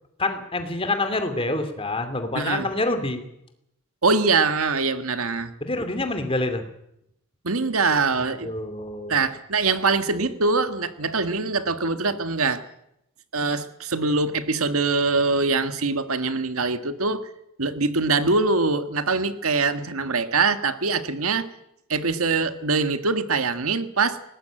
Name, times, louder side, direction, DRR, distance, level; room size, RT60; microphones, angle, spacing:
voice 1, 0.2-3.2 5.6-6.6 8.4-9.2, left 2 dB, 25° left, 8 dB, 2.7 m, -27 dB
voice 2, 2.4-2.7 4.0-5.5 7.4-8.5 9.1-12.6 13.3-17.3 17.6-21.5 21.9-24.2, right 3 dB, 80° right, 10 dB, 1.7 m, -23 dB
21.0 x 18.5 x 9.0 m, 0.80 s
head